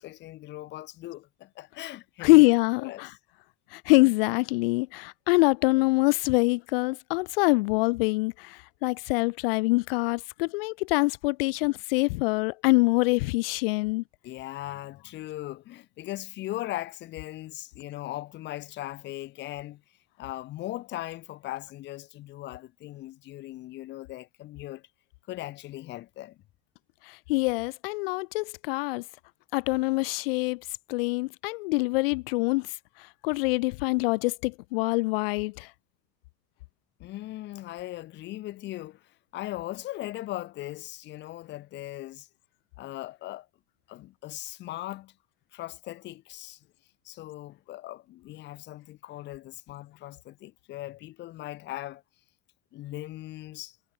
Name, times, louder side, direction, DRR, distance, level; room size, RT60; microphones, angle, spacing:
voice 1, 0.0-2.5 2.8-3.1 3.9-4.0 14.2-19.8 20.2-24.9 25.3-26.4 37.0-42.3 42.8-43.5 43.9-45.1 45.5-46.6 47.0-52.0 52.7-53.8, left 16 dB, 35° left, 4.9 m, -39 dB
voice 2, 2.2-3.1 3.7-14.0 27.1-29.0 29.5-30.6 30.9-32.7 33.2-35.7, left 25 dB, 60° left, 1.9 m, -24 dB
supercardioid pair, 170°, 33 cm